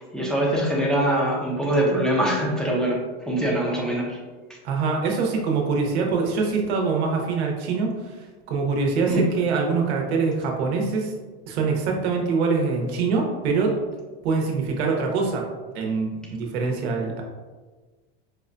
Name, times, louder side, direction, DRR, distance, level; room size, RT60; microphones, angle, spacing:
voice 1, 0.0-3.0 3.2-4.2 9.1-9.2, right 1 dB, ahead, -4 dB, 0.5 m, -23 dB
voice 2, 4.6-11.1 11.5-13.7 14.2-15.5 15.7-17.2, right 4 dB, 85° right, 1 dB, 0.8 m, -24 dB
4.6 x 2.2 x 2.5 m, 1.3 s
supercardioid pair, 140°, 32 cm